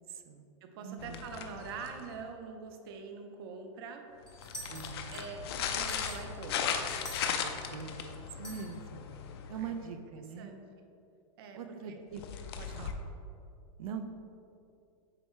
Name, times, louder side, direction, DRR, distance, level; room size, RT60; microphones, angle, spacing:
voice 1, 0.1-0.5 0.8-1.2 4.7-5.1 5.3-5.4 7.4-9.1 9.5-10.5 11.5-12.2 12.7-13.0 13.8-14.1, right 6 dB, 80° right, 7 dB, 0.6 m, -42 dB
voice 2, 0.6-4.1 5.1-6.8 9.6-9.8 10.1-10.6 11.4-12.0 12.6-13.0, right 5 dB, 45° right, 5 dB, 0.7 m, -45 dB
sound 1, 1.0-2.2 4.3-9.9 12.2-12.9, left 7 dB, 45° left, 0.5 m, -37 dB
sound 2, 4.3-5.4 5.8-7.8 8.4-8.7, equal, 5° left, 0.7 m, -47 dB
7.7 x 4.7 x 3.1 m, 2.6 s
supercardioid pair, 170°, 18 cm